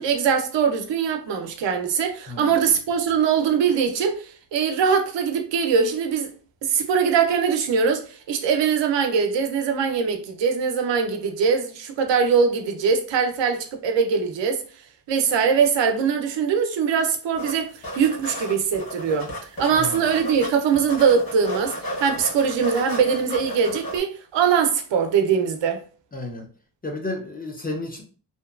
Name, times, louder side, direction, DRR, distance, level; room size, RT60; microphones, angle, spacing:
voice 1, 0.0-6.3 6.6-14.6 15.1-25.8, right 6 dB, 85° right, 0.6 m, -22 dB
voice 2, 2.3-2.8 19.7-20.0 26.1-26.5 26.8-28.0, left 2 dB, 25° left, 0.4 m, -32 dB
sound 1, 17.3-17.5 17.8-20.5 20.7-24.0, equal, 55° left, 1.3 m, -33 dB
2.8 x 2.2 x 2.3 m
wide cardioid pair, 145°, 42 cm